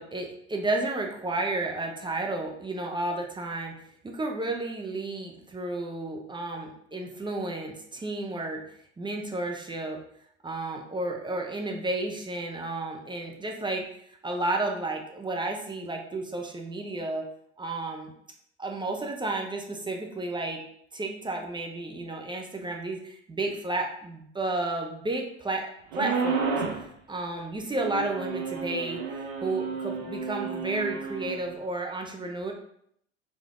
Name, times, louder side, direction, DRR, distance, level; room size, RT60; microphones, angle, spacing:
voice 1, 0.0-3.8 4.0-8.6 9.0-10.0 10.4-13.9 14.2-17.3 17.6-18.1 18.6-20.6 20.9-29.0 29.4-32.5, right 2 dB, 15° right, 2 dB, 0.7 m, -32 dB
sound 1, 25.9-26.8 27.8-31.4, right 5 dB, 65° right, 1.0 m, -31 dB
3.5 x 3.3 x 3.7 m, 0.70 s
hypercardioid pair, 75°, 35 cm